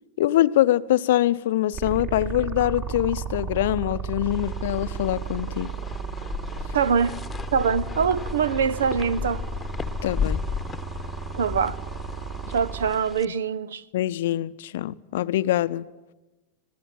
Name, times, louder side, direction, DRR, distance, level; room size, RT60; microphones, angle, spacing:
voice 1, 0.2-5.7 10.0-10.4 13.9-15.9, left 13 dB, 55° left, 0.7 m, -24 dB
sound 1, 1.7-12.9, right 6 dB, 45° right, 3.7 m, -34 dB
sound 2, 4.3-13.2, left 6 dB, 10° left, 1.2 m, -34 dB
voice 2, 6.7-7.2 7.5-9.4 11.4-11.8 12.5-13.8, right 6 dB, 65° right, 0.8 m, -23 dB
25.5 x 20.0 x 9.1 m
figure-of-eight pair, 90°, 0 cm